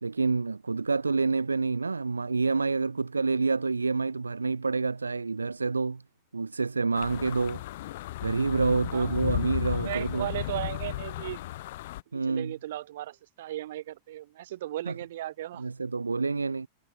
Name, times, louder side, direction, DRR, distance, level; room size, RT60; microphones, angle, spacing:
voice 1, 0.0-6.0 6.3-7.6 8.2-10.3 12.1-12.5 14.9-15.0 15.6-16.7, right 4 dB, 80° right, 0.5 m, -28 dB
sound 1, 6.9-12.0, left 16 dB, 55° left, 2.0 m, -34 dB
voice 2, 8.9-9.2 9.8-11.4 12.1-15.7, right 14 dB, 55° right, 2.1 m, -36 dB
figure-of-eight pair, 90°, 0 cm